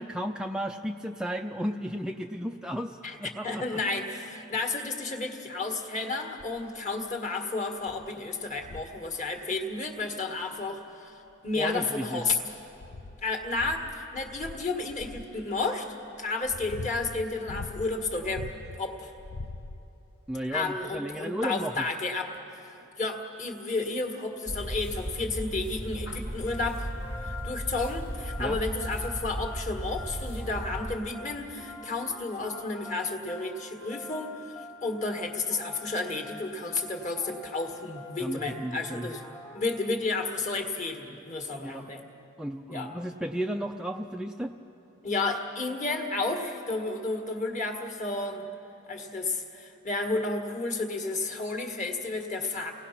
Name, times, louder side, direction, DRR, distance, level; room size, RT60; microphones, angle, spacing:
voice 1, 0.0-3.8 11.6-12.2 20.3-21.9 28.4-28.6 38.2-39.1 41.6-41.9 42.4-44.5, equal, 5° right, 3 dB, 0.4 m, -34 dB
voice 2, 3.4-12.5 13.2-15.9 16.2-18.5 18.8-19.1 20.5-22.7 23.0-26.9 27.2-39.2 39.5-42.0 42.7-42.9 45.0-48.5 48.9-52.7, left 3 dB, 35° left, 3 dB, 1.8 m, -32 dB
sound 1, 6.4-6.7 7.3-7.4 7.8-8.1 8.6-9.0 10.4-10.5 11.3-12.0 12.5-15.3 16.1-18.8 19.2-20.1 20.9-21.0, left 3 dB, 75° left, 0.7 m, -42 dB
sound 2, 24.5-31.0, equal, 60° left, 1.9 m, -36 dB
sound 3, 26.5-40.3, left 3 dB, 15° left, 1.3 m, -46 dB
29.5 x 18.5 x 5.9 m, 2.9 s
head